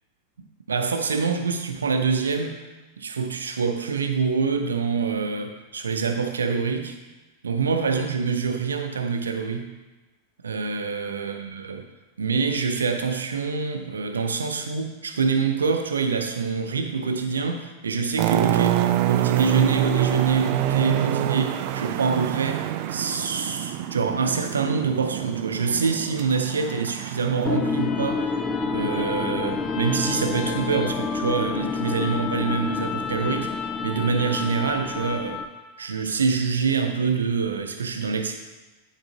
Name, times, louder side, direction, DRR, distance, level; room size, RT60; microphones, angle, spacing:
voice 1, 0.7-2.5 3.0-7.0 7.4-9.7 10.4-11.9 12.2-35.4 35.8-38.3, right 5 dB, 70° right, 5 dB, 0.7 m, -26 dB
sound 1, 18.2-27.6, right 13 dB, 45° right, 0.3 m, -26 dB
sound 2, 27.5-35.6, left 5 dB, 25° left, 0.5 m, -28 dB
10.5 x 4.7 x 2.9 m, 1.2 s
figure-of-eight pair, 90°, 0 cm